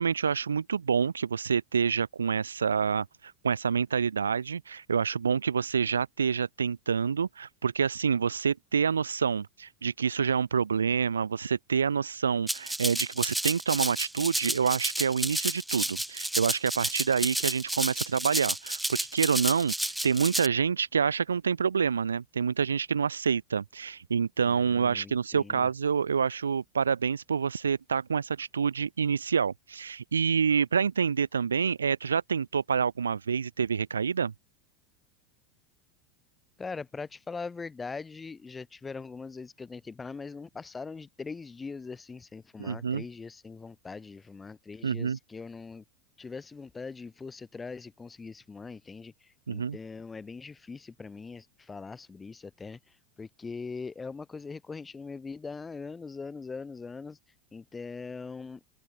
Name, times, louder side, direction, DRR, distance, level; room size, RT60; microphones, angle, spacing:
voice 1, 0.0-34.3 42.6-43.0 44.8-45.2 49.5-49.8, right 6 dB, 80° right, 0.3 m, -27 dB
Rattle (instrument), 12.5-20.5, right 1 dB, 5° right, 0.6 m, -31 dB
voice 2, 24.4-25.7 36.6-45.8 46.2-52.8 53.2-57.2 57.5-58.6, left 4 dB, 15° left, 2.1 m, -41 dB
open air
figure-of-eight pair, 85°, 0 cm